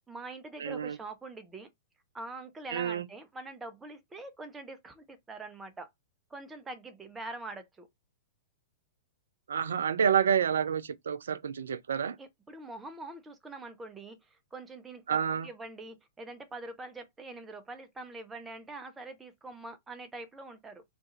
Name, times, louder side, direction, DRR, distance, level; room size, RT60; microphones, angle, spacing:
voice 1, 0.1-1.7 2.1-5.9 6.3-7.9 12.2-20.8, right 2 dB, 10° right, 0.6 m, -44 dB
voice 2, 0.6-1.0 2.7-3.1 9.5-12.2 15.1-15.5, right 8 dB, 65° right, 0.3 m, -28 dB
2.5 x 2.3 x 2.8 m
figure-of-eight pair, 105°, 0 cm